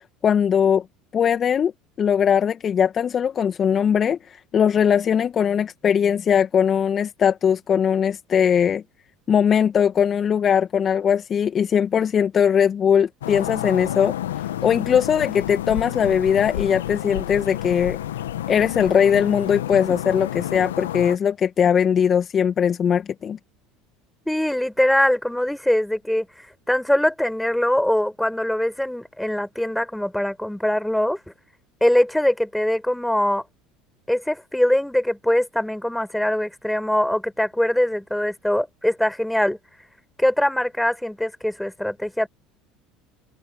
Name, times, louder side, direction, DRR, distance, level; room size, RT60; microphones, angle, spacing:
voice 1, 0.2-0.8 1.1-1.7 2.0-8.8 9.3-14.1 14.6-18.0 18.5-23.4, left 8 dB, 40° left, 1.9 m, -20 dB
sound 1, 13.2-21.2, left 12 dB, 80° left, 1.4 m, -30 dB
voice 2, 24.3-31.2 31.8-33.4 34.1-39.6 40.2-42.3, left 1 dB, 5° left, 5.3 m, -22 dB
open air
hypercardioid pair, 75°, 0 cm